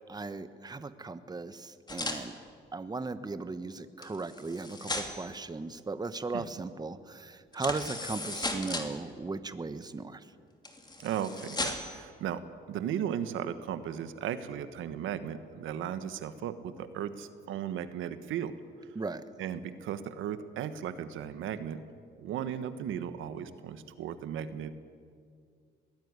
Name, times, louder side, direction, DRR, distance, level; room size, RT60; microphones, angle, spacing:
voice 1, 0.1-2.4 2.7-10.2 18.9-19.2, right 3 dB, 20° right, 12 dB, 1.1 m, -37 dB
sound 1, 1.9-2.2 4.0-5.3 7.5-8.9 10.6-12.0, left 2 dB, 20° left, 2.9 m, -36 dB
voice 2, 11.0-12.4 12.7-18.5 19.4-21.8 22.2-24.7, right 9 dB, 85° right, 11 dB, 1.3 m, -36 dB
21.0 x 16.5 x 9.6 m, 2.1 s
cardioid pair, 90°, 20 cm